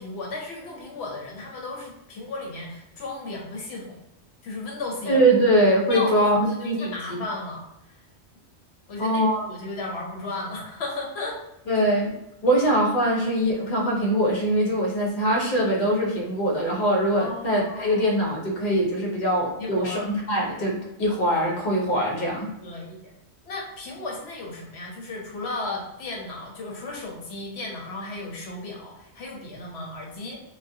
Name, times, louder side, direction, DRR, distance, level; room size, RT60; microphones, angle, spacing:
voice 1, 0.0-4.0 4.4-5.6 5.9-7.7 8.9-11.4 16.9-18.1 19.6-20.1 22.6-23.0 23.4-30.4, left 2 dB, 70° left, -1 dB, 0.8 m, -35 dB
voice 2, 5.1-6.4 6.6-7.2 9.0-9.5 11.7-12.1 12.4-22.5, right 1 dB, 40° left, -2 dB, 0.6 m, -22 dB
2.3 x 2.2 x 2.6 m, 0.88 s
omnidirectional pair, 1.2 m